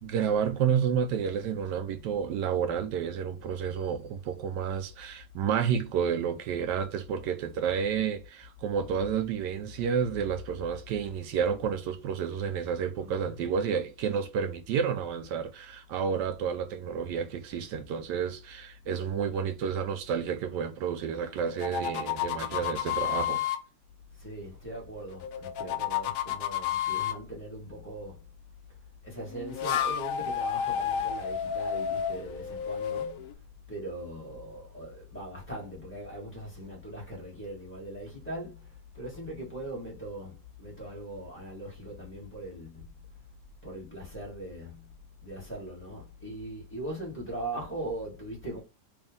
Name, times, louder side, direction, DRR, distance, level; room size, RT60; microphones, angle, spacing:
voice 1, 0.0-23.4, right 7 dB, 75° right, 1.1 m, -30 dB
voice 2, 12.9-13.4 24.2-28.2 29.0-33.2 33.7-42.9 43.6-44.9 45.2-48.6, right 1 dB, 5° left, 1.5 m, -40 dB
sound 1, 21.4-23.6 25.1-27.2 29.3-33.3, left 9 dB, 85° left, 0.7 m, -31 dB
3.5 x 2.7 x 3.6 m
omnidirectional pair, 2.0 m